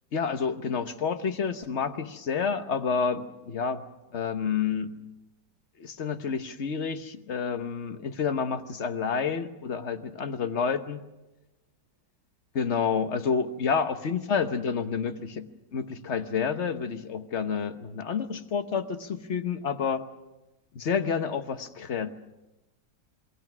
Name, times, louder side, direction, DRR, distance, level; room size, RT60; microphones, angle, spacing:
voice 1, 0.1-3.8 4.1-4.9 5.8-11.0 12.5-15.5 15.7-20.0 20.7-22.1, left 6 dB, 45° left, 10 dB, 1.2 m, -29 dB
28.0 x 20.5 x 6.1 m, 0.98 s
omnidirectional pair, 2.0 m